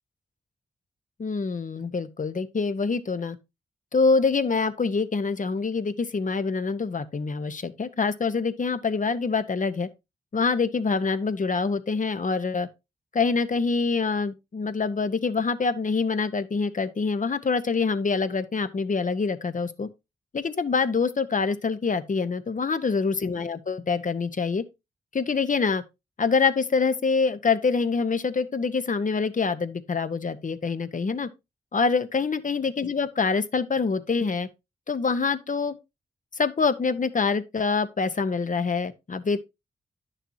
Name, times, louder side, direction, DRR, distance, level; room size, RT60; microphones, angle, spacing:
voice 1, 1.2-3.4 3.9-9.9 10.3-12.7 13.1-19.9 20.3-24.6 25.1-25.8 26.2-31.3 31.7-34.5 34.9-35.8 36.4-39.4, left 4 dB, 50° left, 1.0 m, -25 dB
10.0 x 6.7 x 2.8 m
supercardioid pair, 45°, 17 cm